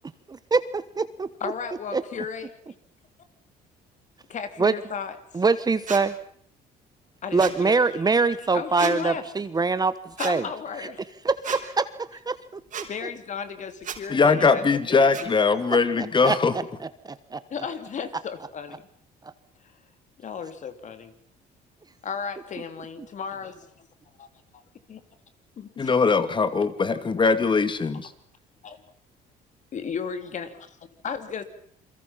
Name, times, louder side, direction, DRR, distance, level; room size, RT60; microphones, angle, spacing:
voice 1, 0.3-1.3 1.9-2.0 4.6-4.7 5.3-6.1 7.3-10.4 11.2-11.9 12.1-12.6 15.7-16.6 17.0-17.4, right 4 dB, 25° right, 14 dB, 1.2 m, -24 dB
voice 2, 1.4-2.5 4.3-5.4 7.2-8.0 8.5-9.2 10.2-11.1 12.8-15.3 17.5-18.9 19.6-19.7 20.2-21.1 22.0-23.9 24.2-24.3 24.5-24.6 24.9-25.0 25.6-26.0 28.6-28.8 29.7-31.4, left 6 dB, 45° left, 10 dB, 2.9 m, -35 dB
sound 1, 5.9-6.0 7.4-7.6 8.8-9.0 10.2-10.3 11.4-11.6 12.7-12.9 13.8-14.0 15.1-15.3, right 8 dB, 50° right, 4.8 m, -33 dB
voice 3, 14.1-16.5 25.8-28.1, left 4 dB, 30° left, 12 dB, 2.4 m, -21 dB
28.5 x 23.0 x 5.8 m, 0.62 s
cardioid pair, 110°, 17 cm